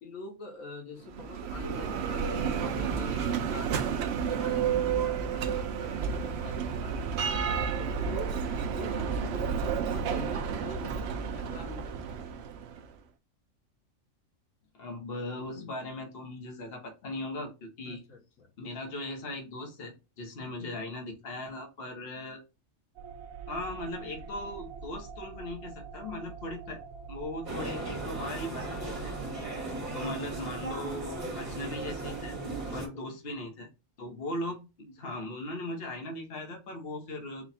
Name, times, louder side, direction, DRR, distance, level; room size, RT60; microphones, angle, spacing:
voice 1, 0.0-12.3 17.9-18.5 29.1-29.7 32.7-33.1, left 3 dB, 75° left, 4 dB, 1.2 m, -45 dB
Bell, 1.0-12.9, right 7 dB, 65° right, 0.7 m, -31 dB
voice 2, 14.7-18.0 18.6-22.4 23.5-26.8 27.1-29.1 29.9-32.4 32.7-33.7 34.0-37.5, left 1 dB, 50° left, 2 dB, 1.2 m, -38 dB
sound 1, 23.0-32.8, right 6 dB, 85° right, 1.1 m, -44 dB
sound 2, 27.4-32.9, right 2 dB, 35° right, 1.4 m, -37 dB
4.1 x 2.3 x 4.1 m, 0.28 s
omnidirectional pair, 1.4 m